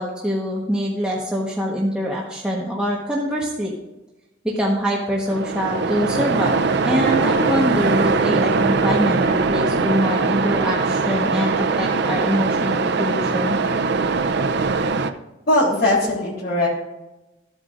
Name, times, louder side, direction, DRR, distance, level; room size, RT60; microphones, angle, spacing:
voice 1, 0.0-3.7 4.4-13.6, equal, 5° right, -4 dB, 1.3 m, -24 dB
Waves surf, 5.3-15.1, right 4 dB, 60° right, 0.6 m, -21 dB
voice 2, 15.5-16.7, left 1 dB, 55° left, -4 dB, 3.9 m, -19 dB
13.5 x 8.8 x 2.6 m, 0.99 s
head